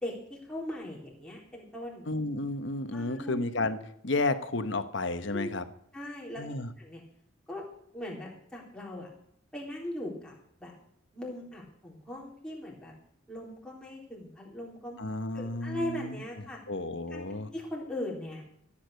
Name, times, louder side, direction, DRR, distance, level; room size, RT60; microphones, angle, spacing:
voice 1, 0.0-2.1 2.9-3.3 5.3-5.5 5.9-6.5 6.8-7.0 7.5-7.7 7.9-9.1 9.5-10.3 10.6-10.8 11.1-12.9 13.3-15.0 15.3-16.6 17.1-18.4, left 1 dB, 5° left, -4 dB, 3.8 m, -39 dB
voice 2, 2.1-3.8 4.0-5.6 6.4-6.7 15.0-16.2 16.7-17.5, left 2 dB, 60° left, 10 dB, 1.2 m, -32 dB
15.0 x 8.9 x 6.5 m, 0.71 s
head